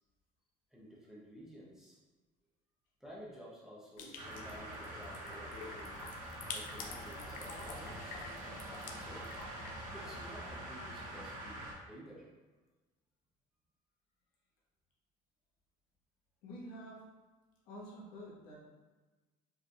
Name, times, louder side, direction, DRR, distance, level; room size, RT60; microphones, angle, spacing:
voice 1, 0.7-2.0 3.0-6.0 6.5-8.2 8.9-9.3 9.9-12.3, equal, 5° right, -6 dB, 0.7 m, -53 dB
sound 1, 4.0-10.6, left 4 dB, 55° left, 0.6 m, -48 dB
sound 2, 4.2-11.7, right 1 dB, 55° right, 1.2 m, -45 dB
voice 2, 16.4-17.0 17.6-18.6, equal, 75° left, -5 dB, 1.3 m, -48 dB
4.9 x 3.2 x 2.4 m, 1.2 s
cardioid pair, 150°, 16 cm